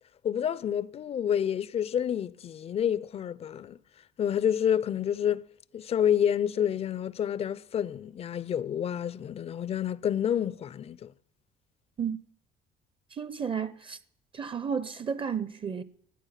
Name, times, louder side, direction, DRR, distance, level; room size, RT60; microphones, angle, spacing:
voice 1, 0.2-3.8 4.2-5.5 5.7-11.1, left 9 dB, 35° left, 0.4 m, -28 dB
voice 2, 13.2-14.0 14.3-15.8, right 7 dB, 30° right, 0.6 m, -32 dB
14.0 x 7.6 x 5.6 m
cardioid pair, 110°, 17 cm